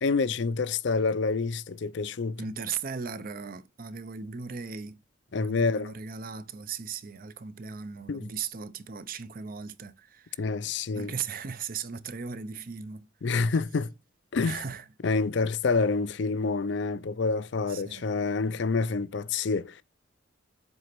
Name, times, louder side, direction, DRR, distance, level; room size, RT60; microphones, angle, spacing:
voice 1, 0.0-2.4 5.3-5.9 8.1-8.3 10.4-11.1 13.2-13.9 14.3-14.6 15.0-19.8, left 4 dB, 60° left, 0.5 m, -27 dB
voice 2, 2.4-5.0 5.4-10.4 10.9-13.1 13.4-13.5 14.4-14.8 17.7-18.1, right 6 dB, 45° right, 0.6 m, -37 dB
7.9 x 4.1 x 5.9 m
head